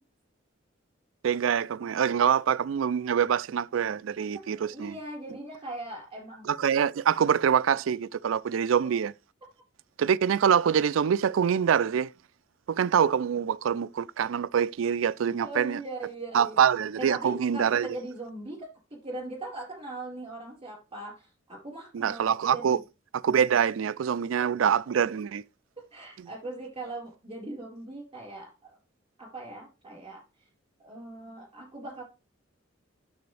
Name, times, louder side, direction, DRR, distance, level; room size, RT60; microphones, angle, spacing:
voice 1, 1.2-4.9 6.4-9.1 10.0-12.1 12.7-15.8 16.3-17.9 21.9-22.8 23.2-25.4, right 8 dB, 85° right, 0.4 m, -25 dB
voice 2, 4.6-6.5 15.4-16.6 17.0-18.7 18.9-22.8 25.9-28.8 29.2-30.2 30.8-32.0, right 2 dB, 30° right, 4.3 m, -40 dB
9.3 x 7.0 x 3.3 m
head